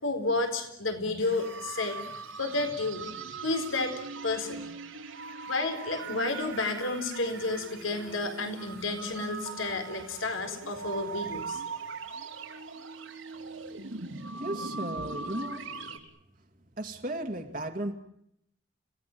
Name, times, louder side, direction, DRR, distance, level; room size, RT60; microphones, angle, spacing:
voice 1, 0.0-2.0 2.4-3.1 3.4-4.0 4.2-4.7 5.5-11.6, left 3 dB, 85° left, 4.4 m, -31 dB
sound 1, 1.2-16.0, right 4 dB, 85° right, 3.8 m, -40 dB
voice 2, 14.4-15.7 16.8-17.9, right 1 dB, 40° right, 2.0 m, -35 dB
30.0 x 18.0 x 9.2 m
head